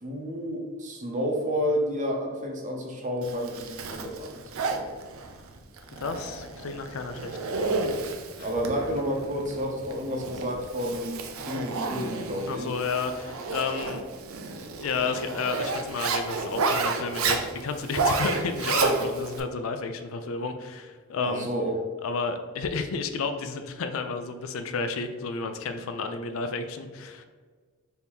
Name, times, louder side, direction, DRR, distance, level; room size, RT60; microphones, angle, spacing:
voice 1, 0.0-5.0 8.4-11.2 11.5-12.7 21.2-21.8, equal, 35° right, 1 dB, 0.7 m, -30 dB
Zipper (clothing), 3.2-19.4, right 3 dB, 80° right, 0.5 m, -31 dB
voice 2, 6.0-7.7 8.0-8.5 12.5-14.0 14.6-21.5 22.0-27.2, left 4 dB, 70° left, 8 dB, 0.4 m, -32 dB
4.4 x 2.7 x 3.5 m, 1.5 s
head